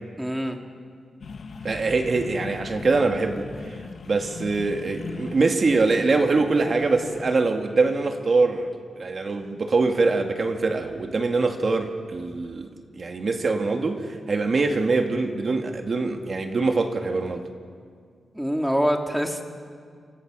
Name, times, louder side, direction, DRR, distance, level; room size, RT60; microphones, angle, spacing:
voice 1, 0.2-0.6 18.3-19.4, equal, 5° right, 3 dB, 2.3 m, -24 dB
sound 1, 1.2-7.3, left 4 dB, 60° left, 1.4 m, -39 dB
voice 2, 1.6-3.5 4.1-17.4, right 3 dB, 45° right, 5 dB, 2.0 m, -23 dB
28.5 x 26.5 x 6.3 m, 2.1 s
wide cardioid pair, 115°, 0 cm